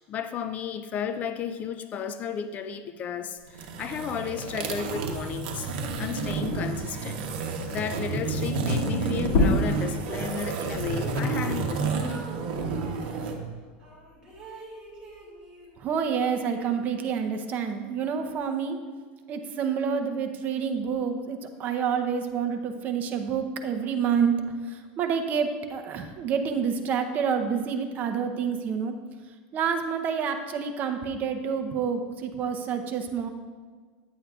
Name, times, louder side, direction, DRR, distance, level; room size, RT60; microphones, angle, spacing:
voice 1, 0.1-5.7 6.0-7.2 7.7-12.0, left 7 dB, 30° left, 10 dB, 0.3 m, -33 dB
sound 1, 3.5-13.4, right 3 dB, 70° right, 1.0 m, -30 dB
sound 2, 9.2-14.5 14.9-16.6, left 2 dB, 55° left, 1.9 m, -31 dB
sound 3, 10.3-13.1 13.8-15.8 16.1-17.2, right 4 dB, 15° right, 2.3 m, -45 dB
voice 2, 15.8-18.8 19.3-24.3 24.7-28.9 29.5-33.3, right 6 dB, 35° right, 6 dB, 0.7 m, -28 dB
9.9 x 8.1 x 2.4 m, 1.6 s
supercardioid pair, 145°, 5 cm